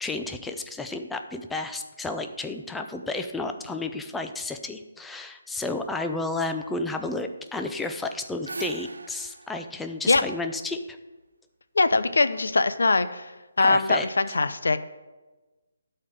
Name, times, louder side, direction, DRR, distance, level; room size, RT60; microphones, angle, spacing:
voice 1, 0.0-10.8 13.6-14.1, left 2 dB, 5° left, 6 dB, 0.5 m, -32 dB
sound 1, 8.0-11.1, right 2 dB, 90° right, 0.6 m, -40 dB
voice 2, 11.7-13.3 13.6-14.8, left 3 dB, 85° left, 12 dB, 0.7 m, -22 dB
12.0 x 4.4 x 7.9 m, 1.2 s
hypercardioid pair, 165°, 0 cm